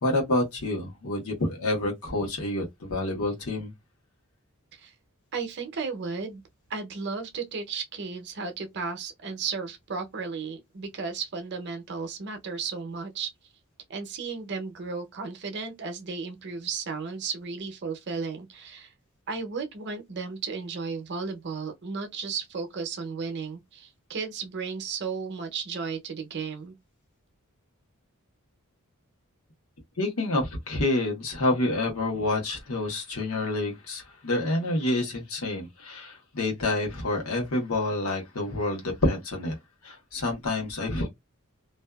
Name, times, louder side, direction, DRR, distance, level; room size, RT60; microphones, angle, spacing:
voice 1, 0.0-3.7 30.0-39.5 39.8-41.1, left 2 dB, 80° left, 1.0 m, -28 dB
voice 2, 5.3-6.4 6.7-13.3 13.9-18.9 19.3-26.8, right 5 dB, 55° right, 0.6 m, -34 dB
2.5 x 2.3 x 2.3 m
head